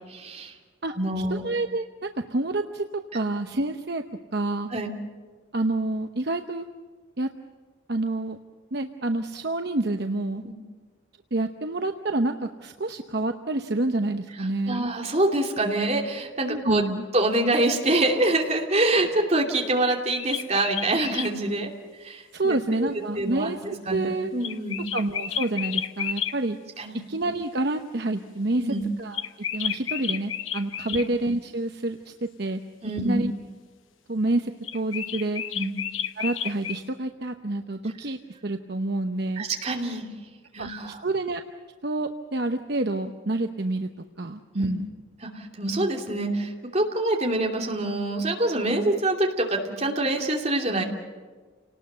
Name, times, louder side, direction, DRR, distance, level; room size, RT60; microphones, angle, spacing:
voice 1, 0.1-0.5 1.0-1.4 4.7-4.9 10.4-10.5 14.7-16.8 17.1-21.7 22.0-22.9 23.2-23.5 23.9-24.8 26.8-27.0 28.5-28.8 30.9-31.0 32.8-33.2 35.5-35.7 39.4-40.1 40.5-41.0 44.6-44.7 45.2-50.8, right 2 dB, 35° right, 1 dB, 2.7 m, -25 dB
voice 2, 1.3-2.8 3.1-4.0 4.3-4.7 5.5-6.7 7.2-7.3 7.9-8.4 8.7-10.4 11.3-14.9 16.5-17.1 22.3-24.3 24.9-26.6 27.1-28.7 29.0-29.2 29.5-32.6 33.0-33.3 34.1-35.4 36.2-39.5 40.6-41.4 41.8-43.9 44.2-44.9, right 2 dB, 55° right, 6 dB, 0.9 m, -28 dB
sound 1, 19.8-21.3 24.4-26.4 29.1-31.1 34.6-36.8, left 9 dB, 80° left, 1.1 m, -31 dB
29.0 x 19.0 x 6.9 m, 1.5 s
head